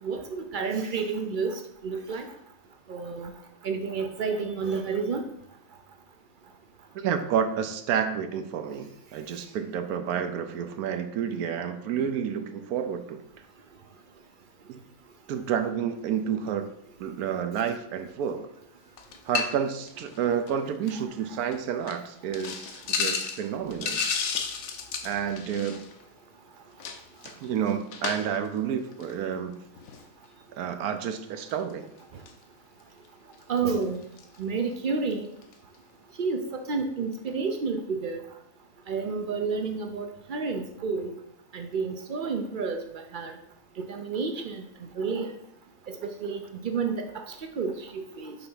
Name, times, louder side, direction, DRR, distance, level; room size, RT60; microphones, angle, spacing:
voice 1, 0.0-2.3 2.9-3.3 3.6-5.3 21.3-21.4 33.5-34.0 34.4-35.3 36.2-38.2 38.9-41.1 41.5-43.3 43.9-44.6 45.0-45.3 45.9-48.4, right 5 dB, 65° right, 5 dB, 0.4 m, -30 dB
voice 2, 6.9-13.2 14.7-14.8 15.3-16.6 17.0-18.5 19.3-24.1 25.0-25.9 27.2-29.5 30.6-31.9, right 8 dB, 85° right, 8 dB, 1.1 m, -30 dB
sound 1, 19.0-19.6 19.9-20.2 20.5-20.6 20.9-21.0 21.5-21.6 21.9-22.0 22.3-26.0 26.8-28.5 28.9-29.1 29.8-30.1 31.5-31.7 32.3-32.4 33.1-33.2 33.3-34.4 35.1-35.2 35.4-35.5, left 6 dB, 60° left, 0.9 m, -33 dB
5.8 x 3.4 x 5.5 m, 0.78 s
omnidirectional pair, 1.5 m